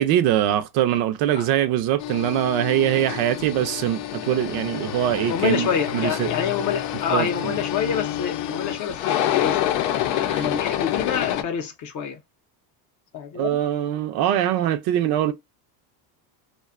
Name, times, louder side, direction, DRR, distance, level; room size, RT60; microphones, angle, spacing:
voice 1, 0.0-5.7 5.9-6.3 7.1-7.6 10.2-10.5 13.3-15.3, right 11 dB, 50° right, 0.5 m, -23 dB
sound 1, 2.0-11.4, left 12 dB, 80° left, 0.6 m, -27 dB
voice 2, 2.9-3.5 5.3-9.7 10.1-12.2 13.1-13.6, left 7 dB, 40° left, 0.6 m, -27 dB
2.5 x 2.2 x 2.4 m
cardioid pair, 145°, 48 cm